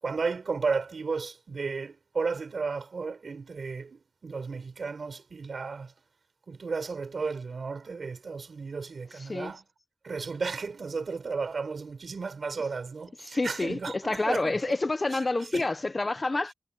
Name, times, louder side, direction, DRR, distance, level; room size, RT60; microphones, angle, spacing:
voice 1, 0.0-5.9 6.5-9.6 10.0-14.8 15.5-15.6, right 4 dB, 85° right, 4.5 m, -33 dB
voice 2, 9.2-9.5 13.3-16.5, left 2 dB, 40° left, 1.0 m, -28 dB
wide cardioid pair, 75°, 0 cm